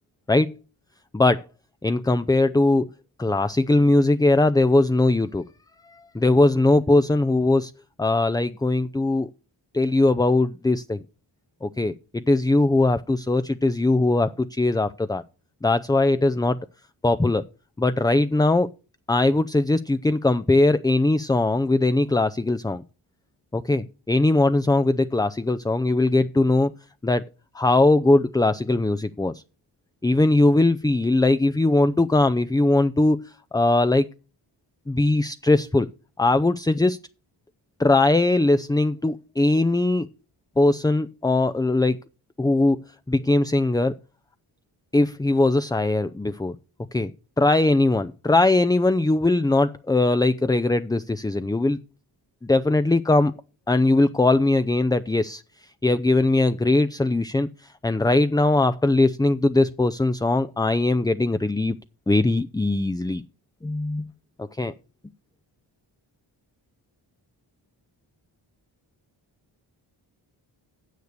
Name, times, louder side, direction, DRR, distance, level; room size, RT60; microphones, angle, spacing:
voice 1, 1.1-1.5 1.8-2.9 3.2-5.4 6.1-7.7 8.0-9.3 9.7-11.0 11.6-15.2 15.6-16.6 17.0-17.4 17.8-18.7 19.1-22.8 23.5-26.7 27.0-27.2 27.5-29.4 30.0-33.2 33.5-34.1 34.9-35.9 36.2-37.0 37.8-40.1 40.6-42.0 42.4-42.8 43.1-43.9 44.9-46.6 46.9-47.1 47.4-51.8 52.4-53.3 53.7-55.4 55.8-57.5 57.8-61.7 62.1-63.2 63.6-64.1 64.6-64.7, left 2 dB, 10° left, 0.4 m, -20 dB
9.6 x 6.6 x 6.6 m
cardioid pair, 45°, 49 cm